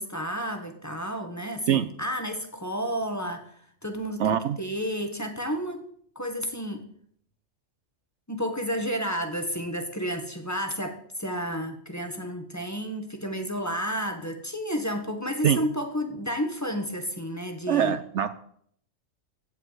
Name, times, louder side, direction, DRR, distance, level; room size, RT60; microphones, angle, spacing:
voice 1, 0.0-5.9 6.1-6.8 8.3-18.0, equal, 15° left, 4 dB, 1.4 m, -31 dB
voice 2, 4.2-4.6 15.4-15.6 17.7-18.3, right 10 dB, 65° right, 12 dB, 0.9 m, -23 dB
15.5 x 5.4 x 8.0 m, 0.65 s
omnidirectional pair, 1.4 m